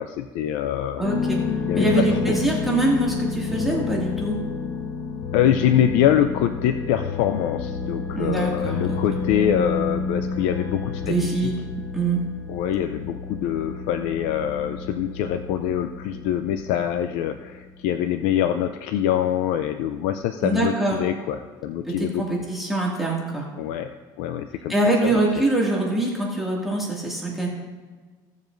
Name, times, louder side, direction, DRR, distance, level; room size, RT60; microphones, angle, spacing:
voice 1, 0.0-1.1 1.6-2.4 5.3-11.5 12.5-22.2 23.6-23.9 24.2-24.7 25.0-25.2, left 10 dB, 85° left, 8 dB, 0.5 m, -24 dB
sound 1, 1.0-17.6, left 4 dB, 55° left, 1.0 m, -30 dB
voice 2, 1.0-1.4 1.7-4.3 8.1-9.0 11.0-11.6 11.9-12.2 20.4-21.0 21.9-23.5 24.7-27.5, right 2 dB, ahead, -4 dB, 2.1 m, -24 dB
17.0 x 7.3 x 2.6 m, 1.4 s
cardioid pair, 130°, 10 cm